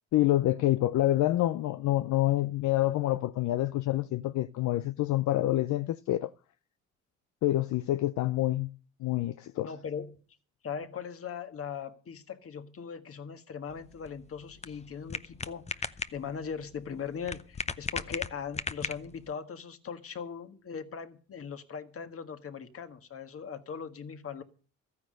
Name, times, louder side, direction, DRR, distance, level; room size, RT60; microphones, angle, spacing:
voice 1, 0.1-6.3 7.4-8.7 9.0-9.7, left 15 dB, 70° left, 0.6 m, -27 dB
voice 2, 9.6-10.2 10.6-24.4, left 6 dB, 50° left, 1.6 m, -40 dB
sound 1, 13.7-19.3, left 4 dB, 20° left, 0.7 m, -38 dB
13.5 x 9.6 x 6.4 m
cardioid pair, 90°, 30 cm